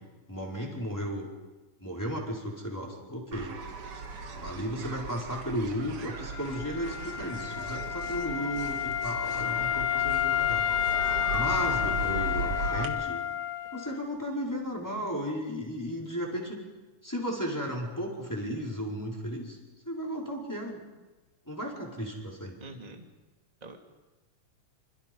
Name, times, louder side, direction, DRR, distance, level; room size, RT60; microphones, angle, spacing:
voice 1, 0.3-1.3 1.8-3.5 4.3-10.6 11.3-13.2 13.7-16.6 17.0-19.6 19.8-20.8 21.5-22.6, equal, 5° left, -3 dB, 4.6 m, -34 dB
sound 1, 3.3-12.9, right 4 dB, 50° right, 2.5 m, -38 dB
Wind instrument woodwind instrument, 6.3-14.1, left 10 dB, 65° left, 2.2 m, -30 dB
voice 2, 22.6-23.0 23.6-23.8, right 2 dB, 15° right, 3 dB, 2.0 m, -44 dB
28.0 x 27.0 x 5.4 m, 1.2 s
omnidirectional pair, 3.7 m